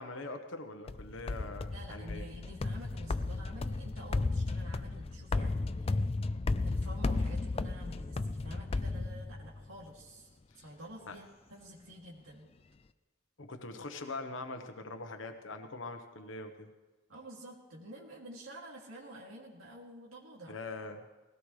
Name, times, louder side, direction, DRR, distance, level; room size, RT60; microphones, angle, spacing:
voice 1, 0.0-2.3 10.5-10.6 11.1-11.2 13.4-16.7 20.5-21.0, left 2 dB, 70° left, 5 dB, 1.1 m, -43 dB
sound 1, 0.9-9.7, left 3 dB, 30° left, 0.3 m, -34 dB
voice 2, 1.7-6.0 6.6-12.5 17.1-20.6, right 1 dB, 85° right, -3 dB, 2.6 m, -49 dB
20.0 x 16.5 x 3.3 m, 1.3 s
head